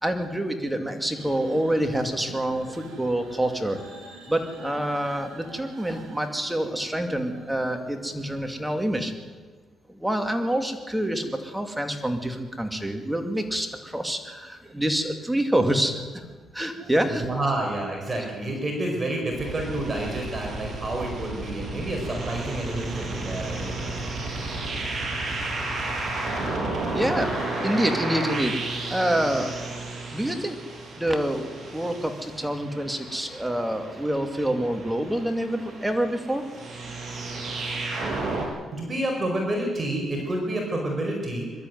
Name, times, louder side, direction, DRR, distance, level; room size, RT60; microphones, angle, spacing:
voice 1, 0.0-9.1 9.9-16.3 16.5-17.3 26.9-29.6 30.1-30.6 31.0-36.5, right 1 dB, 5° right, 5 dB, 2.6 m, -27 dB
sound 1, 1.1-8.7, right 4 dB, 80° right, 5.8 m, -46 dB
voice 2, 17.2-23.9 38.7-41.4, right 1 dB, 30° right, 1 dB, 4.8 m, -29 dB
sound 2, 19.3-38.5, right 2 dB, 45° right, 6.5 m, -32 dB
22.5 x 12.5 x 9.4 m, 1.4 s
cardioid pair, 90°, 0 cm